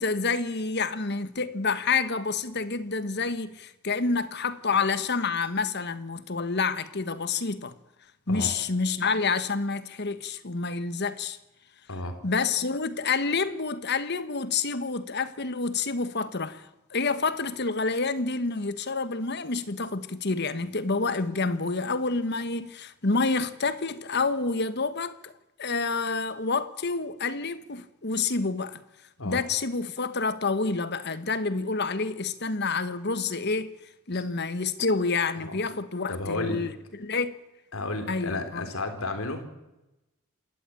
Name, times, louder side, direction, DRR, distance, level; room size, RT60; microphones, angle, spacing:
voice 1, 0.0-7.7 8.3-11.4 12.2-25.3 25.6-28.8 29.2-33.7 34.1-36.7 37.0-37.4 38.1-38.6, left 4 dB, 50° left, 1.3 m, -28 dB
voice 2, 36.1-36.6 37.7-39.5, left 2 dB, 85° left, 3.9 m, -32 dB
28.0 x 14.0 x 9.0 m
head